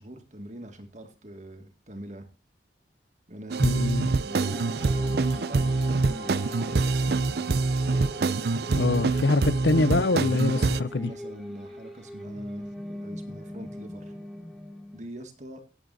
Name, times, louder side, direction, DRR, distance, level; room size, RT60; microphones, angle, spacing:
voice 1, 0.0-2.3 3.3-7.5 10.5-14.2 14.9-15.6, equal, 40° right, 2.0 m, -43 dB
sound 1, 3.5-10.8, right 3 dB, 60° right, 0.5 m, -25 dB
voice 2, 3.6-4.1 8.7-11.1, left 3 dB, 75° left, 0.7 m, -24 dB
sound 2, 4.3-15.0, equal, ahead, 2.4 m, -41 dB
17.0 x 7.9 x 4.1 m
head